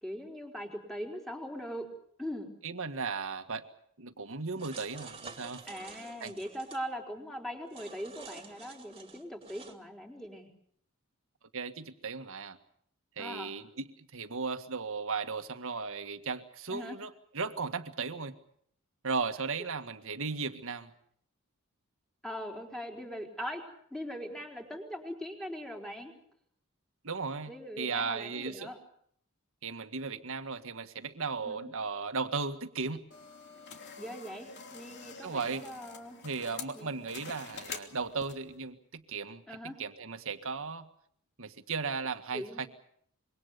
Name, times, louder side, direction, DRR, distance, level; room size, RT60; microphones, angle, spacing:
voice 1, 0.0-1.9 2.2-2.5 5.7-10.5 13.2-13.5 16.7-17.0 22.2-26.1 27.5-28.8 31.5-31.7 34.0-36.2 36.7-36.9 39.5-39.8 42.3-42.6, equal, ahead, 2 dB, 4.3 m, -41 dB
voice 2, 2.6-3.7 4.0-5.6 6.2-6.3 11.5-12.6 13.2-18.3 19.0-20.9 27.0-28.7 29.6-33.0 35.2-35.7 36.2-40.9 41.4-42.7, right 4 dB, 65° right, 8 dB, 1.8 m, -36 dB
sound 1, 4.6-6.8 7.7-9.7, right 4 dB, 25° right, 2.8 m, -48 dB
sound 2, 33.1-38.6, left 5 dB, 55° left, 3.0 m, -46 dB
26.0 x 23.5 x 6.9 m, 0.65 s
head